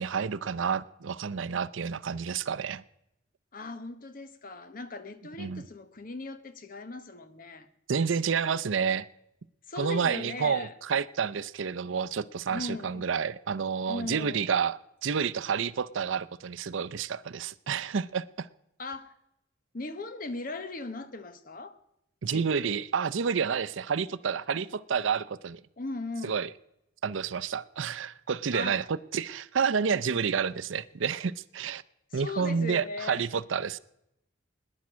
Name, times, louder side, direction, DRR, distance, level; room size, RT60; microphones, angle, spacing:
voice 1, 0.0-2.8 5.4-5.7 7.9-9.0 9.8-18.5 22.2-25.6 26.2-26.5 27.0-31.8 32.1-33.8, right 6 dB, 80° right, 0.5 m, -29 dB
voice 2, 3.5-7.7 9.7-10.7 12.5-13.1 13.9-14.5 18.8-19.2 19.7-21.8 22.2-22.7 25.8-26.4 28.5-28.9 32.1-33.3, left 3 dB, 45° left, 1.0 m, -38 dB
19.0 x 10.5 x 6.2 m
head